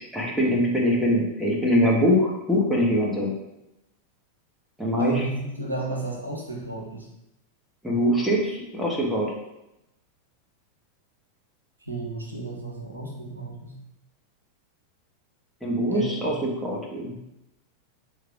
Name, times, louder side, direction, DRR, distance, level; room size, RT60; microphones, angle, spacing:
voice 1, 0.1-3.3 4.8-5.2 7.8-9.3 15.6-17.2, equal, ahead, -3 dB, 1.2 m, -23 dB
voice 2, 5.0-7.1 11.8-13.8 15.9-16.4, right 2 dB, 80° right, 0 dB, 0.8 m, -33 dB
6.5 x 3.3 x 2.4 m, 0.89 s
figure-of-eight pair, 90°, 0 cm